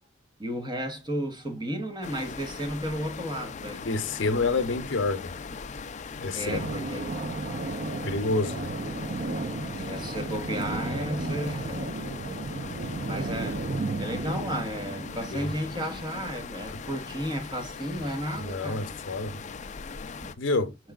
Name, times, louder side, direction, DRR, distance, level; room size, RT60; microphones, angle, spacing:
voice 1, 0.4-3.9 6.3-7.0 9.8-11.9 13.1-13.6 14.0-18.9 20.2-20.4, equal, 25° right, 1.1 m, -33 dB
sound 1, 2.0-20.3, left 5 dB, 40° left, 0.4 m, -40 dB
voice 2, 3.9-5.3 6.2-6.7 8.0-8.7 15.3-15.5 18.4-19.4 20.4-20.8, left 3 dB, 75° left, 0.7 m, -28 dB
sound 2, 6.5-16.3, right 2 dB, 50° right, 0.5 m, -34 dB
4.7 x 4.6 x 2.3 m
head